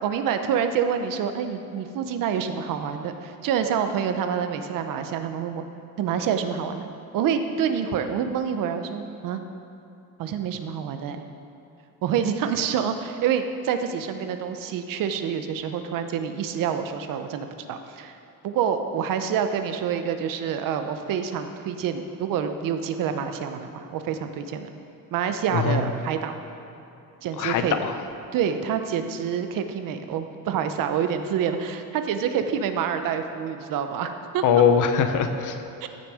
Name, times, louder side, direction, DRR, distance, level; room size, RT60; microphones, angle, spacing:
voice 1, 0.0-5.6 6.0-9.4 10.2-11.2 12.0-18.2 18.4-24.7 25.1-26.4 27.2-27.7 28.3-34.4 35.8-35.9, right 7 dB, 75° right, 8 dB, 0.9 m, -27 dB
voice 2, 25.5-25.9 27.4-28.0 34.4-35.6, left 7 dB, 65° left, 8 dB, 0.9 m, -21 dB
15.0 x 6.7 x 4.9 m, 2.8 s
cardioid pair, 170°, 33 cm